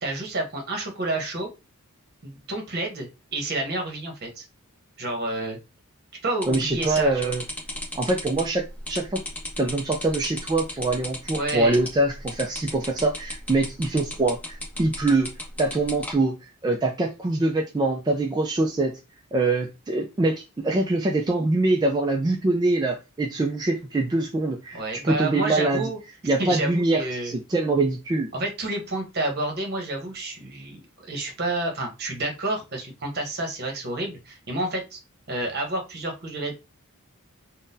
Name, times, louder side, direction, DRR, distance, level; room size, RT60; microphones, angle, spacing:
voice 1, 0.0-1.5 2.2-4.5 5.0-5.6 6.2-7.3 11.3-11.8 24.7-26.0 26.4-27.4 28.3-35.0 35.3-36.5, right 2 dB, 50° right, 1.0 m, -29 dB
sound 1, 6.4-16.1, left 1 dB, 5° left, 0.9 m, -34 dB
voice 2, 6.5-7.4 8.0-9.2 9.6-15.3 15.6-16.4 16.6-18.9 19.3-25.9 26.2-28.3, right 2 dB, 20° right, 0.3 m, -24 dB
3.7 x 2.2 x 2.6 m
head